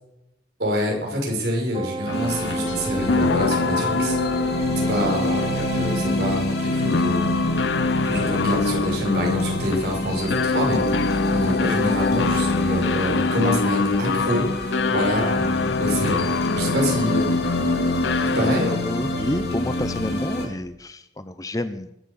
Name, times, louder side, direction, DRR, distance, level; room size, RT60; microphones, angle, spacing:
voice 1, 0.6-4.2 4.9-7.4 8.0-16.3 16.5-17.3 18.3-18.7, equal, 60° right, -1 dB, 6.4 m, -26 dB
Wind instrument woodwind instrument, 1.7-6.2, right 3 dB, 25° right, 0.9 m, -33 dB
sound 1, 2.1-18.8, left 4 dB, 80° left, 0.6 m, -25 dB
sound 2, 2.1-20.5, left 1 dB, 60° left, 3.1 m, -27 dB
voice 2, 18.6-21.9, left 1 dB, 20° left, 11 dB, 0.7 m, -29 dB
21.0 x 8.1 x 7.3 m, 0.83 s
head